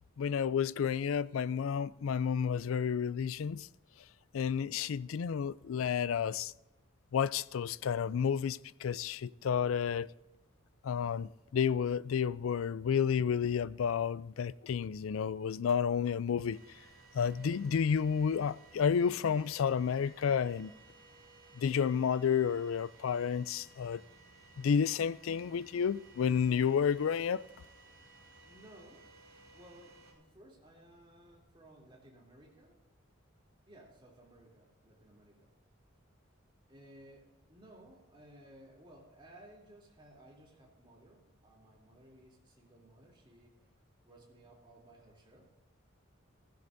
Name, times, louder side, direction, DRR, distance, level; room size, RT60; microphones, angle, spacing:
voice 1, 0.2-3.7 4.3-6.5 7.1-10.1 10.8-16.6 17.1-20.7 21.6-24.0 24.6-27.4, left 7 dB, 80° left, 0.4 m, -31 dB
sound 1, 16.5-30.1, right 3 dB, 60° right, 4.7 m, -59 dB
voice 2, 28.4-29.1 29.5-32.8 33.7-35.5 36.7-43.7 44.0-45.5, right 1 dB, 25° right, 3.1 m, -58 dB
16.0 x 15.0 x 2.6 m
head